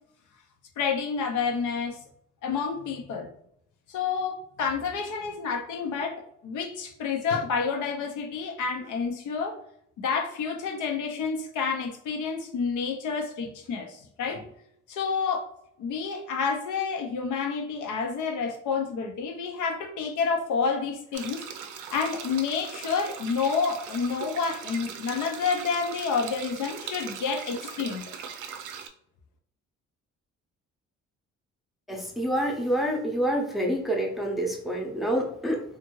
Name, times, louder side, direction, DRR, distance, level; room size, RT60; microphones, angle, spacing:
voice 1, 0.8-2.0 2.4-3.3 3.9-9.5 10.0-14.4 14.9-15.5 15.8-21.4 21.9-28.0, left 5 dB, 75° left, 3 dB, 0.7 m, -29 dB
sound 1, 21.1-28.9, right 7 dB, 90° right, 0.5 m, -40 dB
voice 2, 31.9-35.6, right 1 dB, ahead, 0 dB, 0.6 m, -27 dB
2.6 x 2.5 x 3.0 m, 0.69 s
cardioid pair, 90°, 30 cm